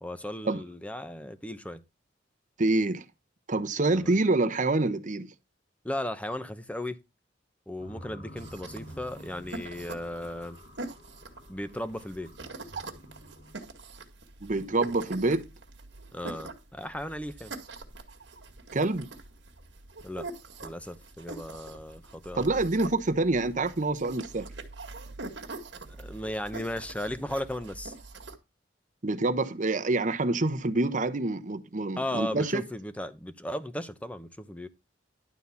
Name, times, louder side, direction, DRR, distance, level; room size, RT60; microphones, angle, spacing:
voice 1, 0.0-1.8 3.9-4.1 5.8-7.0 7.7-10.6 11.5-12.3 16.1-17.5 20.0-20.3 20.6-22.5 26.0-27.9 32.0-34.7, left 1 dB, 10° left, 0.8 m, -36 dB
voice 2, 2.6-3.0 3.5-5.3 14.4-15.4 18.7-19.1 22.3-24.5 29.0-32.6, right 2 dB, 45° right, 1.0 m, -26 dB
sound 1, 7.8-13.5, equal, 70° left, 2.4 m, -49 dB
sound 2, 8.4-28.3, right 3 dB, 75° right, 2.0 m, -44 dB
11.5 x 4.0 x 7.1 m
head